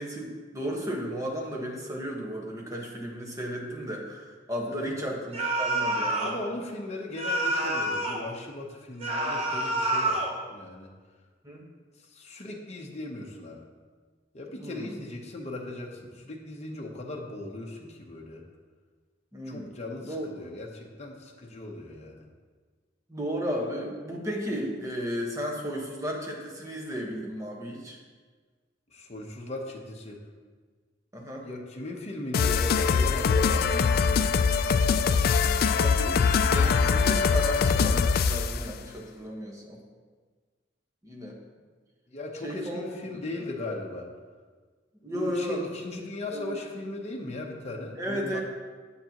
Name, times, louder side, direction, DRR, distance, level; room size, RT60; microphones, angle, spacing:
voice 1, 0.0-6.4 11.4-11.6 14.5-14.9 19.3-19.7 20.0-20.2 23.1-28.0 31.1-31.4 35.7-39.8 41.0-41.4 42.4-42.9 45.0-45.6 46.3-46.6 48.0-48.4, equal, 20° right, -1 dB, 1.3 m, -34 dB
sound 1, 5.3-6.4 7.2-8.3 9.0-10.4, right 1 dB, 35° right, 1.0 m, -28 dB
voice 2, 6.2-10.2 10.5-10.9 12.0-13.6 14.3-18.4 19.4-22.2 28.9-30.2 31.4-33.7 42.1-44.1 45.1-48.4, left 2 dB, 35° left, 0 dB, 0.9 m, -38 dB
sound 2, 32.3-38.6, left 5 dB, 55° left, 0.3 m, -23 dB
9.7 x 7.5 x 2.9 m, 1.5 s
head